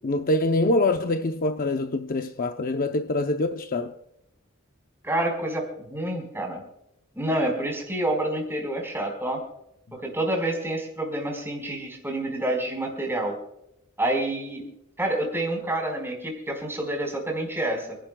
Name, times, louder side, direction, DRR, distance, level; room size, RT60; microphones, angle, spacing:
voice 1, 0.0-3.9, left 2 dB, 45° left, 0.6 m, -25 dB
voice 2, 5.0-6.6 7.1-9.4 9.9-13.4 14.0-14.6 15.0-18.0, right 1 dB, 10° right, 4.4 m, -28 dB
29.5 x 11.5 x 2.3 m
head